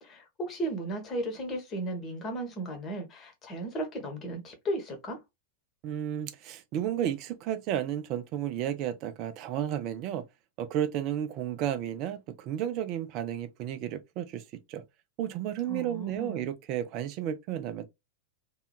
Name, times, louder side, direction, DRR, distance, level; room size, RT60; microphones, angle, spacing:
voice 1, 0.0-5.2 15.7-16.4, right 1 dB, 30° left, 0.9 m, -35 dB
voice 2, 5.8-10.2 10.6-14.4 14.7-14.8 15.2-17.9, right 10 dB, 40° right, 0.4 m, -32 dB
2.8 x 2.2 x 2.2 m
figure-of-eight pair, 90°, 0 cm